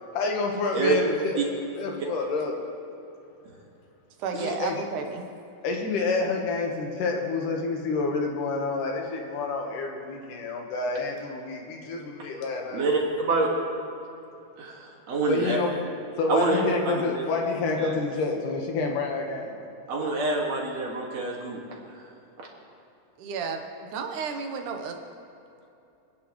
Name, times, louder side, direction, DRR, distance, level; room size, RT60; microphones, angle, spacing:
voice 1, 0.0-1.5 1.8-2.6 4.4-4.8 5.6-12.9 15.3-15.8 16.2-19.6, left 3 dB, 75° left, 1 dB, 2.9 m, -28 dB
voice 2, 4.2-5.3 23.2-23.6 23.9-25.0, right 5 dB, 70° right, 4 dB, 2.5 m, -32 dB
voice 3, 12.7-13.5 14.6-15.6 16.3-17.2 17.8-17.9 19.9-21.6, right 3 dB, 55° right, -2 dB, 3.0 m, -26 dB
26.0 x 10.5 x 3.2 m, 2.7 s
omnidirectional pair, 3.8 m